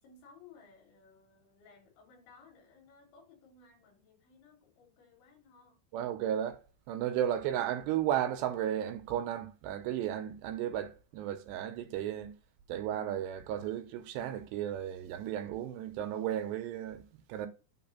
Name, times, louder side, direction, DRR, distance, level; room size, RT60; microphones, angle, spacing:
voice 1, 0.0-5.8, left 5 dB, 85° left, 6.0 m, -59 dB
voice 2, 5.9-6.6 6.9-12.3 12.7-17.5, right 11 dB, 80° right, 2.8 m, -34 dB
9.6 x 3.8 x 5.8 m
omnidirectional pair, 5.2 m